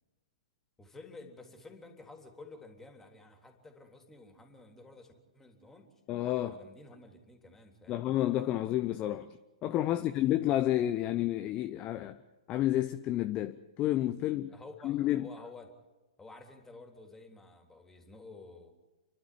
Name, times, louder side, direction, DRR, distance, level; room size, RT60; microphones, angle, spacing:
voice 1, 0.8-5.9 6.5-8.1 9.9-10.4 14.5-15.7 16.2-18.7, left 3 dB, 10° left, 3.5 m, -52 dB
voice 2, 6.1-6.6 7.9-9.3 9.6-12.2 12.5-14.5 14.8-15.3, left 13 dB, 30° left, 0.9 m, -30 dB
29.5 x 12.0 x 9.4 m
figure-of-eight pair, 110°, 4 cm